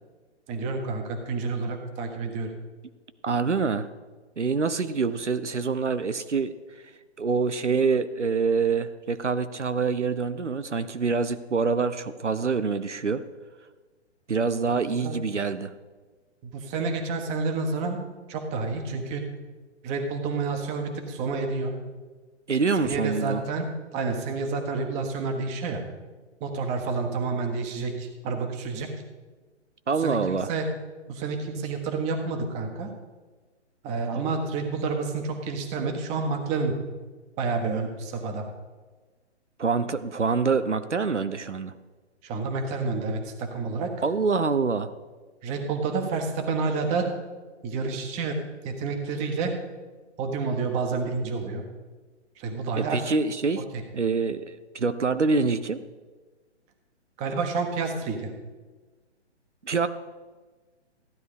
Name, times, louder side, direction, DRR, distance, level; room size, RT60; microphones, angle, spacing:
voice 1, 0.5-2.5 15.0-15.2 16.4-18.0 18.3-19.3 19.8-21.7 22.8-23.7 23.9-25.8 26.4-28.9 30.0-30.6 31.1-32.9 33.8-36.8 37.4-38.5 42.2-43.9 45.4-47.1 47.6-48.4 48.6-49.5 50.2-51.6 52.4-53.0 53.7-53.8 57.2-58.3, right 4 dB, 20° right, 5 dB, 1.4 m, -29 dB
voice 2, 3.2-3.9 4.4-13.2 14.3-15.7 22.5-23.4 29.9-30.5 39.6-41.7 44.0-44.9 52.8-53.6 53.9-55.8 59.6-59.9, right 4 dB, 80° right, 11 dB, 0.8 m, -26 dB
15.0 x 10.5 x 5.1 m, 1.3 s
figure-of-eight pair, 125°, 35 cm